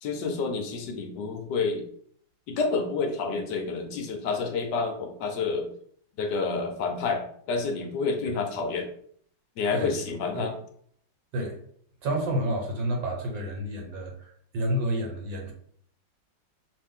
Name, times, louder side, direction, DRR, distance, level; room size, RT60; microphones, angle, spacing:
voice 1, 0.0-1.9 2.5-5.7 6.2-8.9 9.6-10.5, left 4 dB, 70° left, 4 dB, 1.3 m, -29 dB
voice 2, 12.0-15.5, right 1 dB, 80° right, 2 dB, 1.8 m, -30 dB
5.9 x 2.5 x 3.6 m, 0.62 s
omnidirectional pair, 2.0 m